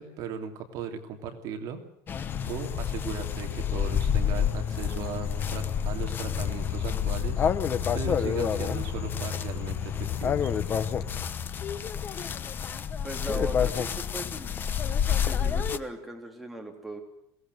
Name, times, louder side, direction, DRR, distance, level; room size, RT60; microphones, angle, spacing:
voice 1, 0.0-1.8 2.5-7.4 7.9-10.5, right 7 dB, 50° right, 5 dB, 2.9 m, -37 dB
sound 1, 2.1-15.8, left 8 dB, 25° left, 1.1 m, -29 dB
sound 2, 2.3-11.2, left 10 dB, 60° left, 4.2 m, -38 dB
voice 2, 13.0-14.6 15.1-17.0, right 1 dB, ahead, 1 dB, 3.4 m, -39 dB
22.5 x 19.0 x 8.0 m, 0.74 s
cardioid pair, 160°, 8 cm